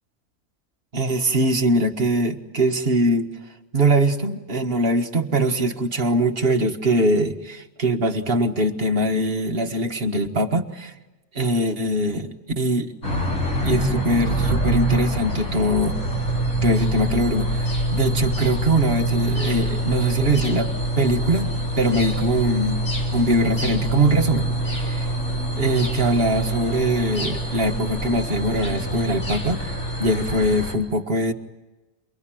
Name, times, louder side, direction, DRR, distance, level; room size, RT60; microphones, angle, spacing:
voice 1, 0.9-3.3 3.7-11.0 11.4-12.9 13.6-16.0 16.6-20.7 21.0-21.5 21.8-22.8 23.1-25.1 25.6-29.7 30.0-31.3, right 1 dB, 45° right, 5 dB, 1.8 m, -22 dB
sound 1, 13.0-30.7, right 1 dB, 60° left, 4.3 m, -25 dB
28.5 x 22.0 x 9.1 m, 1.1 s
omnidirectional pair, 1.4 m